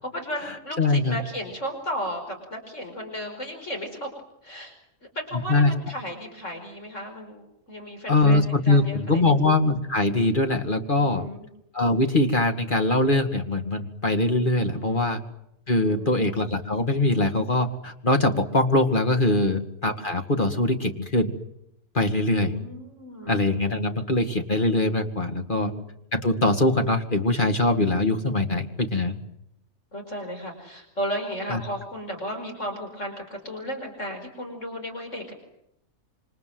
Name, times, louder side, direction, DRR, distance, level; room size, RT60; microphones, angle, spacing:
voice 1, 0.0-4.1 4.4-4.7 5.1-9.3 11.0-11.5 14.7-15.1 15.9-16.3 22.3-23.5 25.5-25.9 29.9-35.3, equal, 55° left, 3 dB, 5.3 m, -35 dB
voice 2, 0.8-1.2 5.5-5.7 8.1-11.2 11.7-15.2 15.7-21.3 21.9-22.6 23.3-25.7 26.1-29.2 31.5-31.6, left 2 dB, 35° left, 5 dB, 2.3 m, -22 dB
27.0 x 26.0 x 7.8 m, 0.78 s
omnidirectional pair, 1.5 m